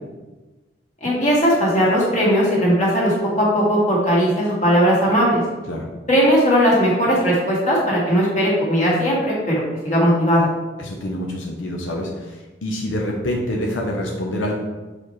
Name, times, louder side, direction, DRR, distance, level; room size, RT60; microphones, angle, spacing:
voice 1, 1.0-5.4 6.1-10.5, equal, 40° left, -6 dB, 1.9 m, -18 dB
voice 2, 10.8-14.5, left 1 dB, 90° left, 0 dB, 0.8 m, -26 dB
6.9 x 4.3 x 3.2 m, 1.2 s
head